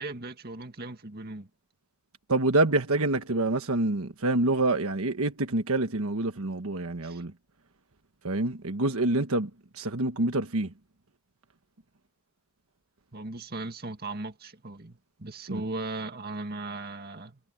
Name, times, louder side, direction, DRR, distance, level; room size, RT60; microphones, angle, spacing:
voice 1, 0.0-1.5 7.0-7.2 13.1-17.4, right 2 dB, 45° right, 2.0 m, -37 dB
voice 2, 2.3-7.3 8.2-9.5 9.8-10.7 15.5-15.6, right 2 dB, 75° right, 1.4 m, -26 dB
head